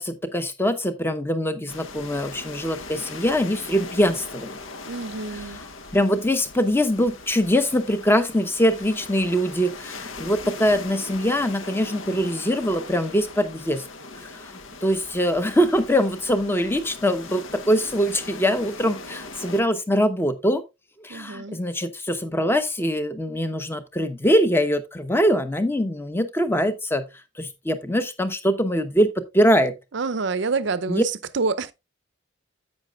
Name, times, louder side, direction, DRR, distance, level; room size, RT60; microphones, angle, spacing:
voice 1, 0.0-4.6 5.9-13.9 14.3-20.6 21.0-27.1 27.4-29.8 30.9-31.0, equal, 10° left, 0.8 m, -23 dB
sound 1, 1.7-19.6, left 3 dB, 70° left, 1.0 m, -39 dB
voice 2, 4.9-5.6 21.1-21.6 29.9-31.7, right 4 dB, 55° right, 0.6 m, -27 dB
11.0 x 8.4 x 2.3 m
head